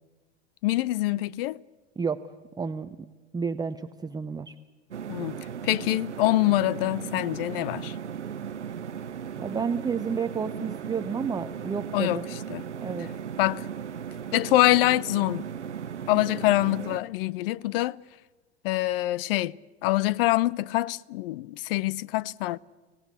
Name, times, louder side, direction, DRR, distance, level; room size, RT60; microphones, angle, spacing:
voice 1, 0.6-1.6 5.1-5.4 5.6-7.9 11.9-12.2 12.5-12.6 13.4-13.7 14.3-15.4 16.1-18.0 18.6-19.6 19.8-22.6, left 17 dB, 55° left, 0.7 m, -25 dB
voice 2, 2.6-3.0 3.3-4.6 9.4-12.3 12.8-13.1, right 5 dB, 10° right, 0.8 m, -31 dB
sound 1, 4.9-17.0, right 8 dB, 90° right, 0.9 m, -37 dB
25.5 x 18.0 x 8.3 m
hypercardioid pair, 95°, 34 cm